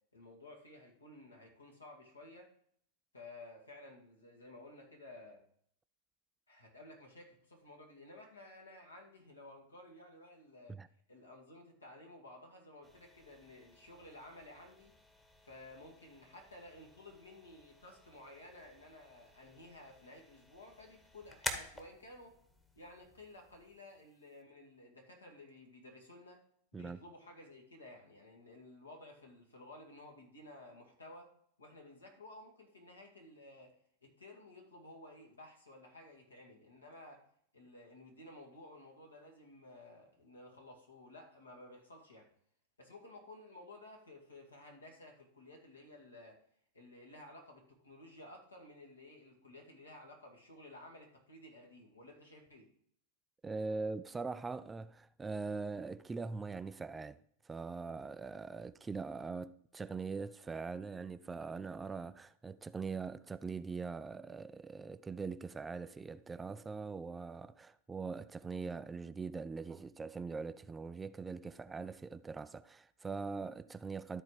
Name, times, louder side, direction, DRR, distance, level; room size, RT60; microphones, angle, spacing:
voice 1, 0.1-2.5 3.1-5.4 6.5-10.8 11.1-14.9 15.4-22.4 22.8-26.4 26.7-31.3 31.6-33.7 34.0-37.2 37.5-42.3 42.8-46.4 46.7-52.7, left 1 dB, 75° left, 2.3 m, -54 dB
sound 1, 12.8-24.4, left 1 dB, 10° left, 1.2 m, -50 dB
voice 2, 53.4-57.2 57.4-74.2, right 4 dB, 15° right, 0.3 m, -42 dB
13.0 x 4.4 x 4.8 m
figure-of-eight pair, 90°, 0 cm